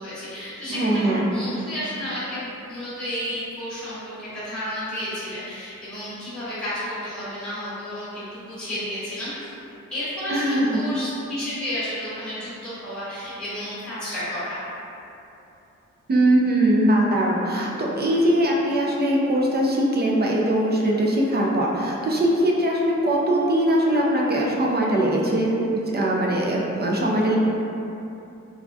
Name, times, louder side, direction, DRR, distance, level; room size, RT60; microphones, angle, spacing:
voice 1, 0.0-9.6 9.9-14.6, left 1 dB, 5° left, -13 dB, 1.0 m, -32 dB
voice 2, 0.7-1.3 10.3-10.7 16.1-25.7 25.9-27.4, right 1 dB, 35° right, -3 dB, 0.4 m, -21 dB
3.4 x 2.1 x 2.5 m, 2.9 s
wide cardioid pair, 140°, 30 cm